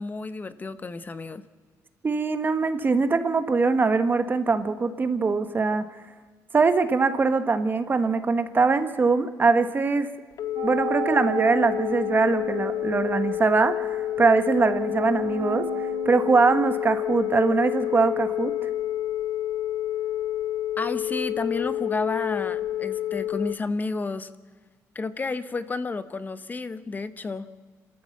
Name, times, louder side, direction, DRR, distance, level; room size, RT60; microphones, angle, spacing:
voice 1, 0.0-1.4 20.8-24.3 24.9-27.5, left 3 dB, 25° left, 13 dB, 0.9 m, -31 dB
voice 2, 2.0-5.8 6.5-10.1 10.6-15.7 16.0-18.7, right 4 dB, 30° right, 10 dB, 1.2 m, -22 dB
Telephone, 10.3-23.5, left 13 dB, 70° left, 0.9 m, -29 dB
sound 1, 10.6-17.5, right 10 dB, 55° right, 0.8 m, -37 dB
27.5 x 13.5 x 7.2 m, 1.5 s
cardioid pair, 105°, 7 cm